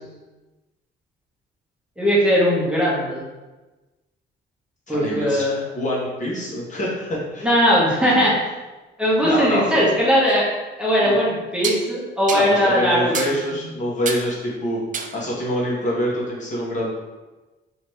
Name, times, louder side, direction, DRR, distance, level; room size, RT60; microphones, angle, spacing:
voice 1, 2.0-3.2 4.9-5.6 7.4-8.3 9.0-10.4 10.8-13.1, equal, 5° right, -7 dB, 1.1 m, -19 dB
voice 2, 4.9-7.5 9.2-9.8 11.0-11.2 12.3-14.8 15.1-17.0, equal, 40° left, -6 dB, 1.2 m, -25 dB
sound 1, 10.3-10.4 11.6-11.9 12.3-12.5 13.1-13.4 14.1-14.3 14.9-15.2, right 6 dB, 40° right, 0.4 m, -28 dB
3.2 x 2.8 x 3.1 m, 1.1 s
cardioid pair, 90°, 20 cm